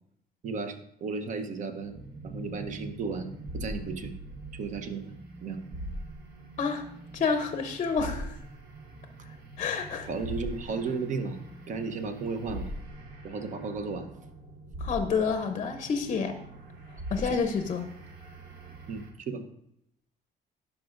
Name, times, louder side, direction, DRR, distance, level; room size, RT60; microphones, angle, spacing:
voice 1, 0.4-1.9 2.2-4.1 4.5-5.2 5.4-5.6 10.1-11.4 11.7-12.7 13.2-14.1 17.3-17.4 18.9-19.4, right 4 dB, 50° right, 8 dB, 0.8 m, -34 dB
sound 1, 1.8-19.1, right 1 dB, 65° right, 1.2 m, -42 dB
voice 2, 7.1-8.4 9.6-10.1 14.8-16.3 17.1-17.8, left 5 dB, 40° left, 7 dB, 0.6 m, -28 dB
11.5 x 4.9 x 2.5 m, 0.75 s
cardioid pair, 110°, 17 cm